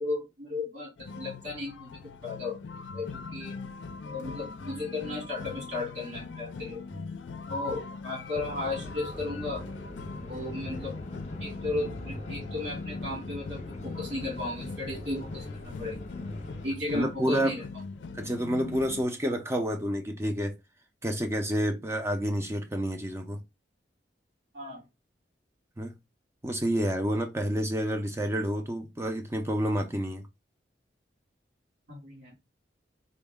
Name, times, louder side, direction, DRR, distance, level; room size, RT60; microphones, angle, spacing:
voice 1, 0.0-2.6 2.9-3.6 4.1-6.8 7.5-9.7 10.2-11.0 11.4-16.0 16.6-17.6 24.5-24.9 31.9-32.3, left 2 dB, 80° right, 2.4 m, -35 dB
sound 1, 1.0-19.0, left 4 dB, 85° left, 0.4 m, -41 dB
sound 2, 8.3-16.7, left 1 dB, 40° left, 0.7 m, -41 dB
voice 2, 16.9-17.5 18.1-20.6 21.0-23.4 25.8-26.0 26.4-30.2, equal, 15° right, 0.4 m, -29 dB
3.8 x 2.1 x 3.5 m
head